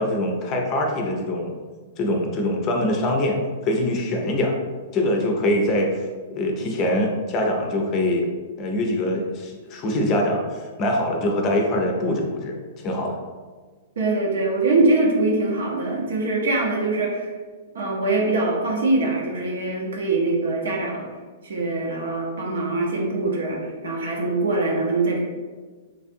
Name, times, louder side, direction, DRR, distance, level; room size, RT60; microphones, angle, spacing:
voice 1, 0.0-1.6 2.0-4.6 4.9-6.1 6.3-8.3 8.6-13.2, left 1 dB, 35° left, 2 dB, 0.5 m, -23 dB
voice 2, 14.0-17.3 17.7-21.0 21.4-25.2, right 2 dB, 65° right, -1 dB, 0.7 m, -23 dB
3.3 x 2.5 x 2.6 m, 1.4 s
figure-of-eight pair, 105°, 0 cm